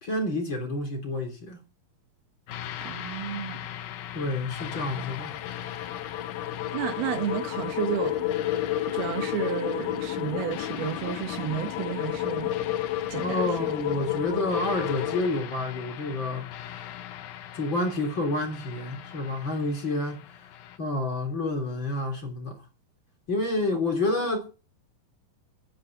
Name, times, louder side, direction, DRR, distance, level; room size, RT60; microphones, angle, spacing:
voice 1, 0.0-1.6 4.1-5.4 13.2-16.5 17.5-20.2 20.8-22.6 23.3-24.5, left 2 dB, 30° left, 4.2 m, -29 dB
sound 1, 2.5-20.8, left 11 dB, 75° left, 2.7 m, -41 dB
voice 2, 2.9-3.6 6.7-8.3 8.9-12.5 13.1-13.7, right 10 dB, 85° right, 3.5 m, -32 dB
sound 2, 4.6-15.3, left 12 dB, 90° left, 1.5 m, -31 dB
11.5 x 10.0 x 7.2 m
omnidirectional pair, 4.4 m